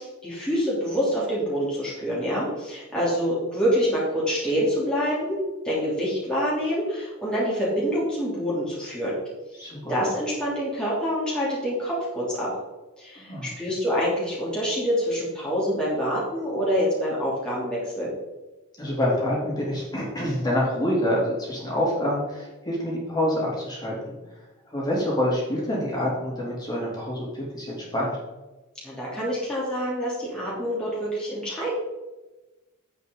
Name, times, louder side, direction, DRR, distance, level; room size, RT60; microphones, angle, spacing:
voice 1, 0.0-9.1 9.9-12.5 13.0-18.1 28.8-31.7, equal, 5° left, -8 dB, 3.0 m, -26 dB
voice 2, 9.6-10.0 13.3-13.5 18.8-23.9 24.3-28.2, left 1 dB, 20° left, -5 dB, 3.2 m, -27 dB
9.9 x 8.2 x 4.0 m, 1.1 s
head